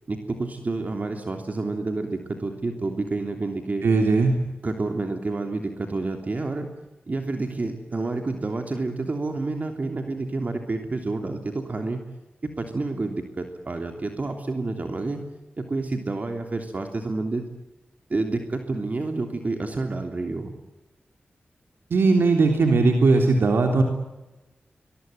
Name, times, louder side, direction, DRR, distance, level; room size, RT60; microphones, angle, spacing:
voice 1, 0.1-3.8 4.6-6.7 7.1-12.0 12.4-15.2 15.6-17.5 18.1-20.5, right 3 dB, 45° right, 5 dB, 3.2 m, -29 dB
voice 2, 3.8-4.4 21.9-23.8, right 3 dB, 90° right, 3 dB, 3.4 m, -19 dB
24.5 x 22.0 x 9.4 m, 1.0 s
wide cardioid pair, 85°, 4 cm